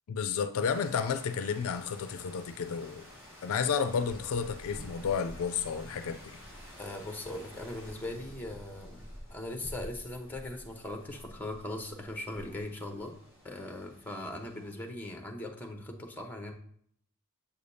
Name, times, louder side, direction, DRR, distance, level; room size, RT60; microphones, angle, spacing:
voice 1, 0.1-3.0 3.4-6.4, left 6 dB, 65° left, 0.4 m, -31 dB
sound 1, 0.6-14.7, equal, 10° right, 1.8 m, -49 dB
voice 2, 6.8-9.0 9.3-13.1 13.4-16.5, left 1 dB, 10° left, 0.8 m, -40 dB
7.1 x 5.0 x 2.7 m
head